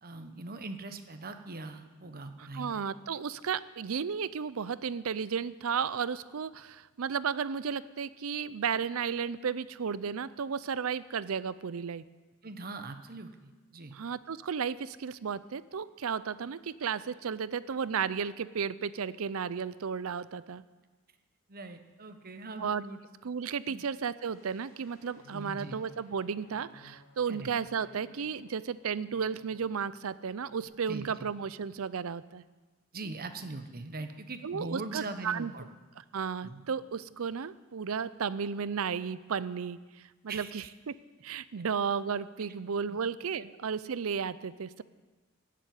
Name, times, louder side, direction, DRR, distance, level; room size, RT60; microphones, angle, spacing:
voice 1, 0.0-2.8 12.4-13.9 21.5-23.0 23.7-23.8 25.3-25.8 27.3-27.5 30.9-31.3 32.9-35.6 36.4-36.6 40.3-40.5 42.9-43.0, right 3 dB, 45° right, 8 dB, 1.1 m, -41 dB
voice 2, 2.4-12.0 13.9-20.6 22.6-22.8 23.2-32.4 34.4-35.5 36.1-39.8 40.2-41.0 41.2-44.8, right 6 dB, 70° right, 17 dB, 0.5 m, -34 dB
sound 1, 24.3-30.0 30.3-30.6, left 2 dB, 40° left, 4.9 m, -60 dB
16.0 x 7.7 x 9.3 m, 1.3 s
head